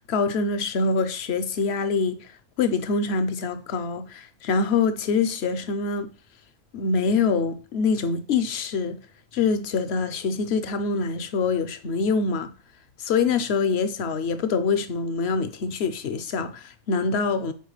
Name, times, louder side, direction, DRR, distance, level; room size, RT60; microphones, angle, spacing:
voice 1, 0.1-6.1 6.7-9.0 9.3-12.5 13.0-17.5, left 4 dB, 60° left, 1.0 m, -25 dB
8.1 x 4.5 x 3.2 m
omnidirectional pair, 1.3 m